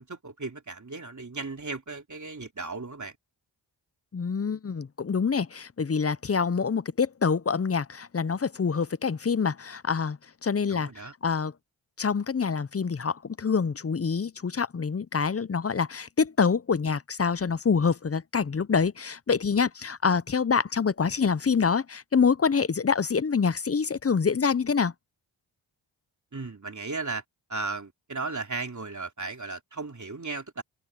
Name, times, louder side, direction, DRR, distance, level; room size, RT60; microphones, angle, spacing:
voice 1, 0.0-3.1 10.7-11.1 26.3-27.2 27.5-30.6, right 3 dB, 35° right, 3.4 m, -36 dB
voice 2, 4.1-10.2 10.4-10.9 11.2-11.5 12.0-24.9, left 5 dB, 30° left, 0.7 m, -26 dB
cardioid pair, 50°, 49 cm